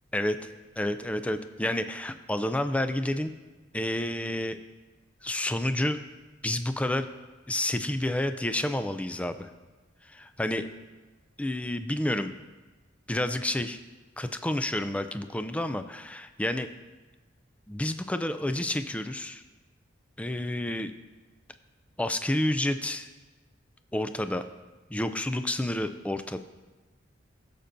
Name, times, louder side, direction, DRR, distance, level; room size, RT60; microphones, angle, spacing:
voice 1, 0.8-3.3 3.7-4.6 5.2-6.0 6.4-7.1 7.5-9.5 10.1-10.7 11.4-12.3 13.1-13.8 14.2-16.7 17.7-19.4 20.2-20.9 22.0-23.1 23.9-24.4 24.9-26.4, left 1 dB, 5° left, 9 dB, 0.3 m, -29 dB
16.0 x 6.8 x 2.6 m, 1.2 s
head